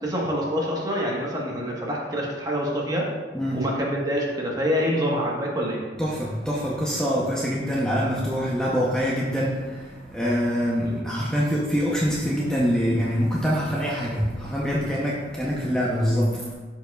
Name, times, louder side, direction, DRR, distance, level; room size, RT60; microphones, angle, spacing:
voice 1, 0.0-3.1 3.5-5.8 10.8-11.0, equal, 20° right, -3 dB, 1.3 m, -26 dB
voice 2, 6.0-16.5, equal, 5° left, -5 dB, 0.7 m, -25 dB
12.5 x 4.6 x 2.4 m, 1.4 s
head